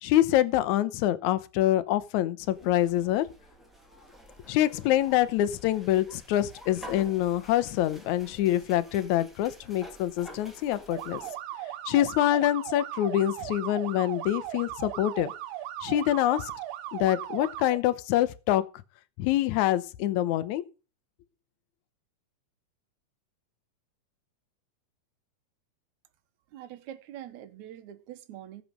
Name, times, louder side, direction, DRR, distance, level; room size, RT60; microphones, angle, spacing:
voice 1, 0.0-3.3 4.5-11.2 11.9-15.3 15.8-16.5 16.9-18.6 19.2-20.6, left 13 dB, 70° left, 2.1 m, -25 dB
sound 1, 2.4-11.3, equal, ahead, 1.4 m, -50 dB
sound 2, 10.9-17.8, right 12 dB, 90° right, 2.6 m, -38 dB
voice 2, 26.5-28.6, right 11 dB, 70° right, 2.3 m, -44 dB
16.0 x 7.5 x 5.3 m
omnidirectional pair, 3.7 m